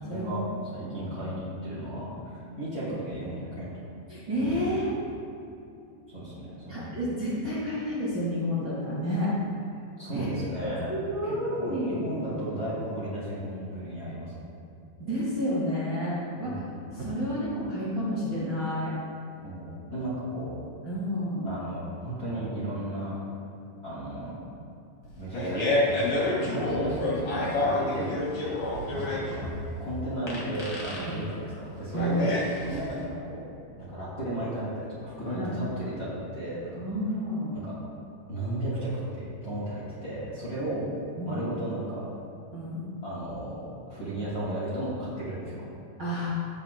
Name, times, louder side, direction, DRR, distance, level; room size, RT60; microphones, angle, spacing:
voice 1, 0.0-0.4 0.7-3.7 6.1-7.0 10.0-10.9 11.2-14.3 16.4-16.9 19.4-20.5 21.4-23.2 23.8-24.3 25.2-28.3 28.9-29.5 29.8-33.4 33.8-36.6 37.5-37.8 38.3-40.9 41.2-42.1 43.0-45.7, right 1 dB, 35° left, -10 dB, 1.5 m, -34 dB
voice 2, 0.8-1.2 4.1-4.9 6.7-9.3 10.1-12.1 15.0-16.6 16.9-18.9 20.8-21.5 31.1-31.2 31.9-32.2 35.3-35.5 36.8-37.5 41.2-41.4 42.5-42.8 46.0-46.3, equal, 90° right, -9 dB, 1.0 m, -30 dB
Fart, 25.0-33.0, left 2 dB, 60° left, 1.0 m, -29 dB
17.5 x 7.4 x 2.2 m, 2.7 s
omnidirectional pair, 5.1 m